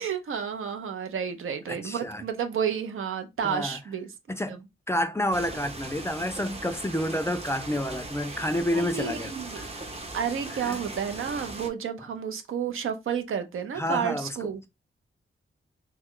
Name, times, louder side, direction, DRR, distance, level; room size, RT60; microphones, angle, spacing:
voice 1, 0.0-4.1 4.5-4.6 8.3-8.4 8.7-9.8 10.1-14.6, right 7 dB, 80° right, 0.6 m, -31 dB
voice 2, 1.7-2.2 3.4-3.8 4.3-4.6 4.9-9.7 10.6-10.8 13.8-14.5, left 1 dB, 15° left, 0.3 m, -29 dB
sound 1, 5.3-11.7, right 2 dB, 30° right, 0.6 m, -39 dB
3.0 x 2.2 x 3.6 m
wide cardioid pair, 95°, 21 cm